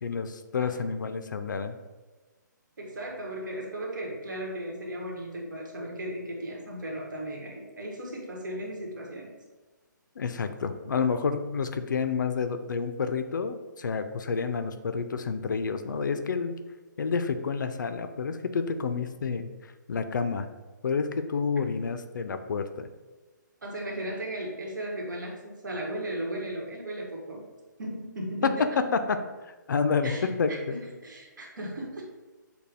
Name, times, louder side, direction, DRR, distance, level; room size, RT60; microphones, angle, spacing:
voice 1, 0.0-1.7 10.2-16.5 17.0-20.5 20.8-22.9 28.4-28.5 28.9-29.0 29.7-30.8, left 5 dB, 70° left, 9 dB, 0.5 m, -29 dB
voice 2, 2.8-9.3 23.6-27.4 27.8-28.8 30.0-32.2, right 1 dB, 70° right, -1 dB, 1.4 m, -36 dB
6.6 x 2.3 x 3.4 m, 1.2 s
hypercardioid pair, 170°, 11 cm